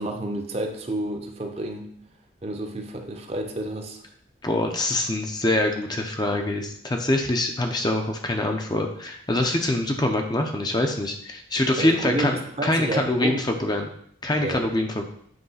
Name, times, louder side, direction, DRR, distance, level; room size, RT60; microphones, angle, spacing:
voice 1, 0.0-1.9 2.4-4.0 11.8-13.4 14.4-14.7, right 1 dB, 35° right, 5 dB, 0.7 m, -30 dB
voice 2, 4.4-13.9 14.2-15.1, left 1 dB, 20° left, 3 dB, 0.6 m, -24 dB
7.9 x 3.3 x 5.6 m, 0.66 s
head